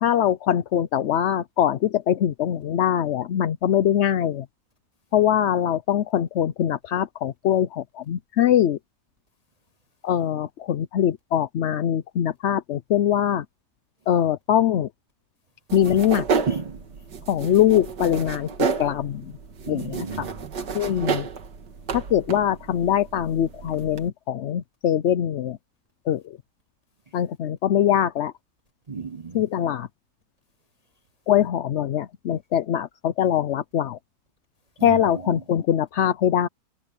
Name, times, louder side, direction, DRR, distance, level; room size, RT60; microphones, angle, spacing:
voice 1, 0.0-4.4 5.1-8.8 10.0-13.4 14.1-14.9 15.7-16.2 17.3-18.5 18.8-19.2 19.7-20.1 20.7-21.3 21.9-25.6 26.1-26.2 27.1-28.3 29.3-29.9 31.3-34.0 34.8-36.5, left 10 dB, 65° left, 0.7 m, -22 dB
sound 1, 15.7-24.1, right 5 dB, 85° right, 2.3 m, -31 dB
voice 2, 16.5-16.8 19.7-20.4 20.8-21.2 23.7-23.8 28.9-29.4 34.8-35.4, right 5 dB, 50° right, 0.4 m, -33 dB
omnidirectional pair, 1.8 m